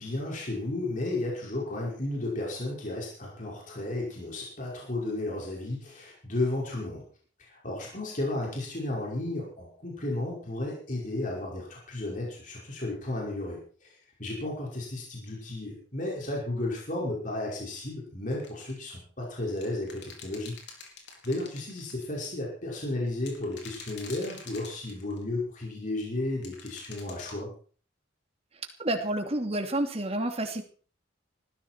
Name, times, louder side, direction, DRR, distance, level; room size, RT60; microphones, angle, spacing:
voice 1, 0.0-7.0 7.4-20.6 21.2-27.5, left 2 dB, 40° left, -3 dB, 5.7 m, -33 dB
sound 1, 18.3-18.8 19.6-22.0 23.2-25.2 26.4-27.4, left 5 dB, 55° left, 5.1 m, -46 dB
voice 2, 28.8-30.6, right 1 dB, 30° right, 5 dB, 2.7 m, -29 dB
20.0 x 14.5 x 4.6 m, 0.42 s
head